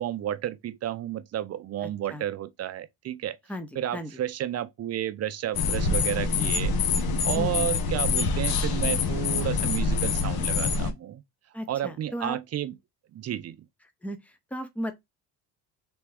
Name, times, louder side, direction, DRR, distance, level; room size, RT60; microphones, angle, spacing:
voice 1, 0.0-3.4 3.8-6.8 7.2-11.2 11.7-12.7 13.1-13.6, right 11 dB, 40° right, 0.5 m, -31 dB
voice 2, 1.8-2.3 3.5-4.1 5.9-6.0 7.4-7.7 11.5-12.4 14.0-14.9, equal, 5° left, 0.8 m, -36 dB
sound 1, 5.5-10.9, left 4 dB, 60° left, 1.1 m, -25 dB
3.4 x 3.0 x 3.3 m
cardioid pair, 100°, 41 cm